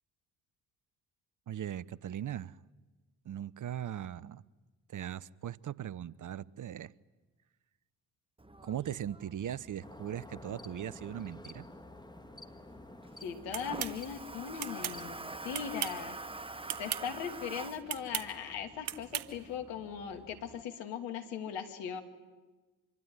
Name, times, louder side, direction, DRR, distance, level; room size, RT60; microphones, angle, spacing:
voice 1, 1.5-2.6 3.2-4.4 4.9-6.9 8.6-11.6, right 10 dB, 45° right, 20 dB, 0.9 m, -39 dB
Toilet flush, 8.4-20.6, right 2 dB, 10° right, 1.5 m, -47 dB
sound 1, 9.8-15.9, left 2 dB, 10° left, 2.0 m, -51 dB
voice 2, 13.2-16.2 16.8-22.0, left 8 dB, 75° left, 6 dB, 2.8 m, -39 dB
sound 2, 13.5-14.0 14.6-15.0 15.5-16.0 16.7-17.0 17.9-18.3 18.9-19.3, right 12 dB, 80° right, 1.4 m, -36 dB
26.0 x 23.5 x 9.7 m, 1.3 s
hypercardioid pair, 50°, 44 cm